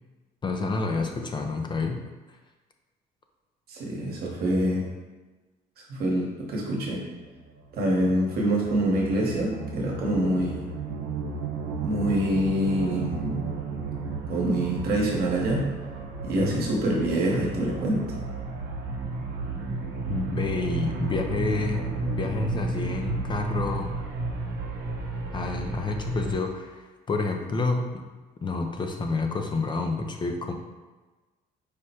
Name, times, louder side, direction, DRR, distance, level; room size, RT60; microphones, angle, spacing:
voice 1, 0.4-2.0 16.3-16.7 20.1-24.0 25.3-28.0 28.4-30.5, left 3 dB, 30° left, 4 dB, 0.4 m, -29 dB
voice 2, 3.7-4.9 5.9-7.0 7.7-10.6 11.8-13.4 14.3-15.7 16.2-18.0, right 1 dB, 65° right, -1 dB, 1.1 m, -25 dB
sound 1, 7.1-26.3, right 3 dB, 85° right, 0.7 m, -33 dB
4.9 x 2.1 x 4.2 m, 1.2 s
cardioid pair, 110°, 17 cm